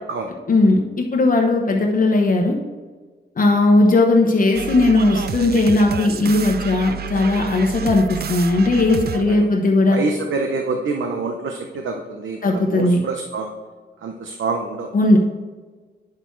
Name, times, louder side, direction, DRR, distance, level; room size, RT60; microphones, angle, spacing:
voice 1, 0.5-2.6 3.4-10.0 12.4-13.0 14.9-15.2, left 2 dB, 45° left, 0 dB, 1.0 m, -17 dB
sound 1, 4.5-9.4, right 7 dB, 55° right, 0.5 m, -30 dB
voice 2, 9.9-13.5 14.0-14.9, right 3 dB, 85° right, 3 dB, 0.9 m, -26 dB
9.7 x 6.5 x 4.6 m, 1.4 s
wide cardioid pair, 150°, 20 cm